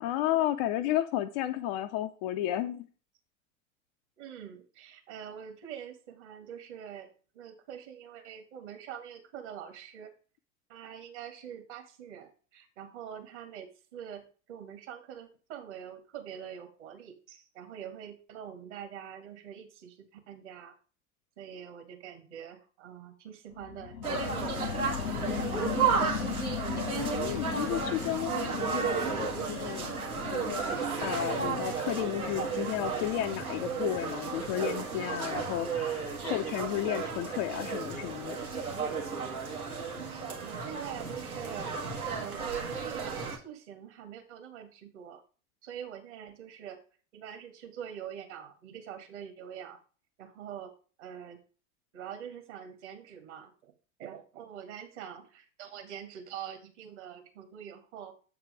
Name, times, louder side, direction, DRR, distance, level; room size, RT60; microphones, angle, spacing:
voice 1, 0.0-2.9 26.8-29.1 29.5-29.9 30.3-30.6 31.0-38.4, left 13 dB, 30° left, 8 dB, 0.4 m, -33 dB
voice 2, 4.2-10.1 10.7-14.2 14.5-20.7 21.4-25.7 40.0-41.7 42.1-45.2 45.6-46.8 47.1-49.8 50.2-50.7 51.0-51.4 51.9-53.7 54.0-58.1, right 9 dB, 55° right, 5 dB, 2.0 m, -44 dB
sound 1, 23.5-34.7 35.1-35.2, left 9 dB, 70° left, 0.6 m, -39 dB
sound 2, 24.0-43.4, right 5 dB, 85° right, 2.0 m, -33 dB
7.9 x 4.7 x 5.0 m, 0.37 s
figure-of-eight pair, 85°, 42 cm